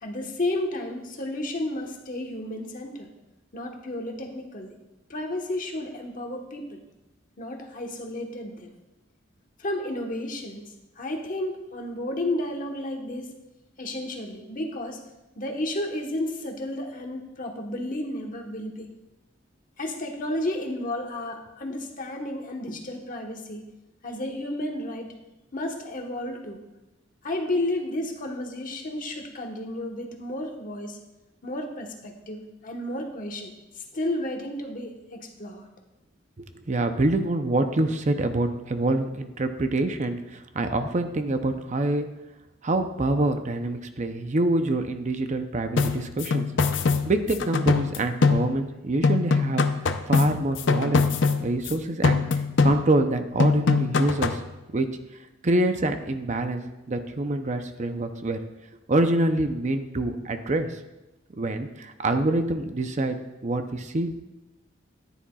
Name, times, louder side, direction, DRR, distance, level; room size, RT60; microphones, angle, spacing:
voice 1, 0.0-3.1 3.5-4.8 5.1-6.8 7.4-8.7 9.6-10.6 11.0-13.3 13.8-15.0 15.4-18.9 19.8-23.6 24.0-25.1 25.5-26.6 27.2-31.0 31.4-35.7, left 1 dB, 45° left, 2 dB, 1.2 m, -32 dB
voice 2, 36.4-42.1 42.6-46.5 47.0-49.6 50.1-51.0 51.4-52.2 52.6-54.4 54.7-54.9 55.4-58.4 58.9-60.7 61.4-63.2 63.4-64.1, right 2 dB, 40° right, 7 dB, 0.6 m, -26 dB
sound 1, 45.8-48.8 49.0-51.7 52.0-53.1 53.4-54.5, left 4 dB, 70° left, 0.6 m, -23 dB
14.0 x 10.0 x 2.4 m, 1.0 s
head